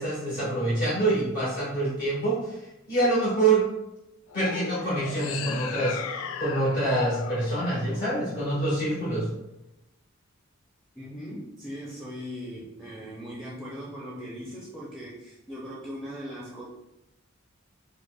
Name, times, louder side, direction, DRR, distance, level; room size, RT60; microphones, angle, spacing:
voice 1, 0.0-2.6 2.9-3.6 4.3-6.0 6.4-9.3, right 2 dB, 55° left, -9 dB, 1.2 m, -26 dB
sound 1, 4.3-8.7, left 6 dB, 75° left, 0.3 m, -37 dB
voice 2, 10.9-16.6, equal, ahead, -7 dB, 0.5 m, -39 dB
5.1 x 2.1 x 2.3 m, 0.91 s
head